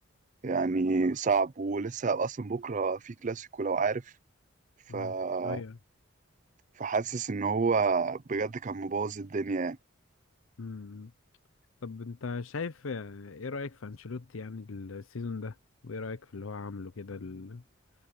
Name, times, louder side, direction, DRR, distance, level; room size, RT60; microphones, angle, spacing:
voice 1, 0.4-4.0 4.9-5.6 6.8-9.8, right 4 dB, 35° right, 0.5 m, -29 dB
voice 2, 5.4-5.8 10.6-11.1 11.8-15.6 15.8-17.6, left 4 dB, 75° left, 0.7 m, -39 dB
head